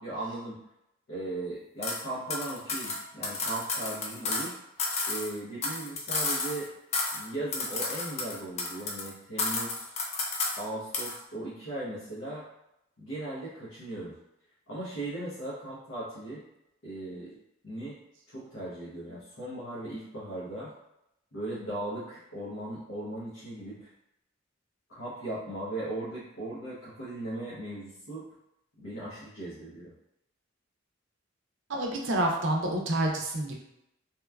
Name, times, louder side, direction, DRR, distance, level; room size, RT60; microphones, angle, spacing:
voice 1, 0.0-0.6 1.1-4.6 5.1-6.7 7.1-9.9 10.6-12.5 13.0-14.2 14.7-16.5 16.8-17.4 17.6-18.0 18.3-20.7 21.3-23.9 24.9-28.2 28.8-29.9, right 2 dB, 85° left, -10 dB, 0.8 m, -38 dB
sound 1, 1.8-2.0 2.3-4.5 4.8-6.6 6.9-7.3 7.5-9.1 9.4-10.6 10.9-11.2, left 3 dB, 35° left, 0.3 m, -32 dB
voice 2, 31.7-33.5, right 1 dB, 65° right, 0 dB, 0.5 m, -28 dB
2.9 x 2.2 x 2.3 m, 0.84 s
head